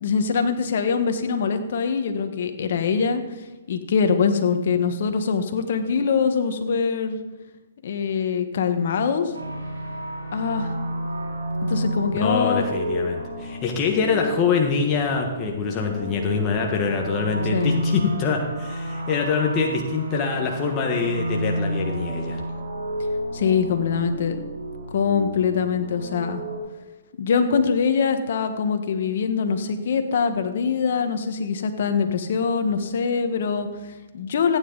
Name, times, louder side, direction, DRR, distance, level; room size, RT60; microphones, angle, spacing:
voice 1, 0.0-3.2 3.7-7.2 7.8-9.3 10.3-10.7 11.6-12.6 17.5-17.8 23.3-24.4 24.9-26.4 27.2-34.6, left 6 dB, 60° left, 7 dB, 1.4 m, -23 dB
sound 1, 9.3-26.6, right 1 dB, 90° right, 3.2 m, -30 dB
voice 2, 12.1-22.4, left 5 dB, 30° left, 1 dB, 1.4 m, -24 dB
15.5 x 9.4 x 4.0 m, 1.1 s
hypercardioid pair, 145°, 0 cm